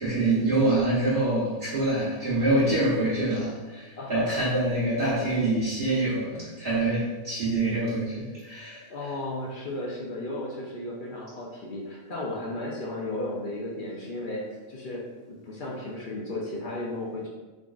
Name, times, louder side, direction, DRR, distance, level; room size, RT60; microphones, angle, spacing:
voice 1, 0.0-9.1, right 2 dB, 45° right, -10 dB, 1.2 m, -26 dB
voice 2, 4.0-4.4 8.9-15.0 15.4-17.3, left 1 dB, 55° left, -3 dB, 0.6 m, -34 dB
3.7 x 3.6 x 2.3 m, 1.2 s
omnidirectional pair, 1.4 m